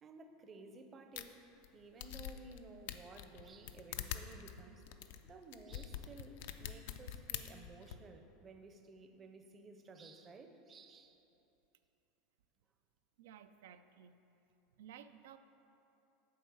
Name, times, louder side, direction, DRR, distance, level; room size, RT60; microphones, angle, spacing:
voice 1, 0.0-1.4 1.7-4.8 5.2-11.2, right 3 dB, 25° right, 6 dB, 0.6 m, -55 dB
sound 1, 1.2-1.3 1.6-1.7 2.0-2.6 2.9-8.0, left 11 dB, 75° left, 0.4 m, -45 dB
voice 2, 13.2-14.1 14.8-15.4, right 9 dB, 85° right, 10 dB, 0.4 m, -55 dB
7.6 x 4.5 x 6.8 m, 2.9 s
supercardioid pair, 135°, 0 cm